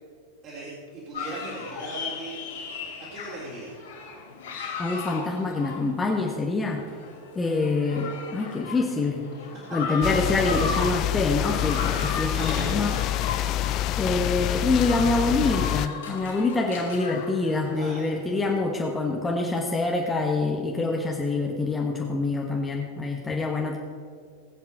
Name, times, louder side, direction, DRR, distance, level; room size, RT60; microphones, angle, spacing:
voice 1, 0.4-2.4 3.0-3.8 9.7-9.8 12.0-13.3 17.8-18.5, right 2 dB, 35° right, -6 dB, 3.6 m, -38 dB
sound 1, 1.1-17.9, left 5 dB, 60° left, 3.6 m, -36 dB
voice 2, 4.8-6.8 7.3-9.3 9.7-12.9 14.0-23.8, left 3 dB, 15° left, 1 dB, 1.3 m, -26 dB
sound 2, 10.0-15.9, left 14 dB, 35° left, 0.3 m, -27 dB
20.5 x 8.1 x 4.5 m, 2.1 s
figure-of-eight pair, 90°, 0 cm